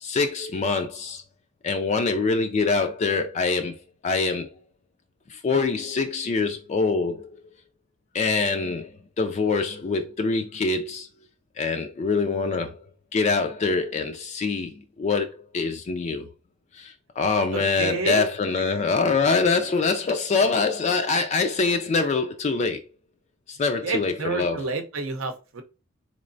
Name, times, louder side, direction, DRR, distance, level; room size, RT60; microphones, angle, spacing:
voice 1, 0.0-1.2 1.6-3.8 4.0-4.5 5.3-7.3 8.1-11.1 11.6-12.8 13.1-14.7 15.0-16.3 16.7-22.8 23.5-24.6, left 4 dB, 35° left, 0.3 m, -24 dB
voice 2, 17.5-18.8 23.8-25.6, right 3 dB, 80° right, 0.7 m, -30 dB
3.8 x 3.2 x 2.5 m
head